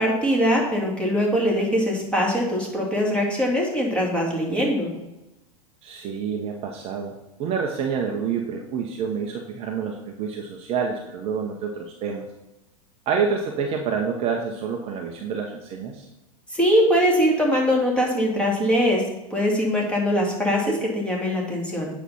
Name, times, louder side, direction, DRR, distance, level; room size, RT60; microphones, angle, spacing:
voice 1, 0.0-4.9 16.5-19.0 19.3-21.9, equal, 5° left, -3 dB, 2.5 m, -22 dB
voice 2, 5.8-12.2 13.1-16.1, right 6 dB, 30° right, 2 dB, 1.0 m, -28 dB
8.3 x 5.8 x 5.7 m, 0.95 s
figure-of-eight pair, 95°, 19 cm